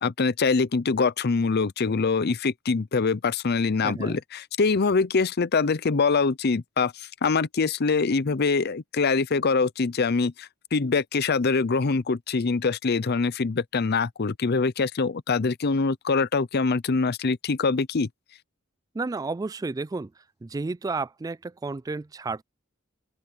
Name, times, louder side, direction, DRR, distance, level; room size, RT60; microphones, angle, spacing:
voice 1, 0.0-18.1, left 4 dB, 55° left, 0.6 m, -24 dB
voice 2, 3.8-4.2 18.9-20.1 20.4-22.4, right 3 dB, 20° right, 0.3 m, -31 dB
open air
head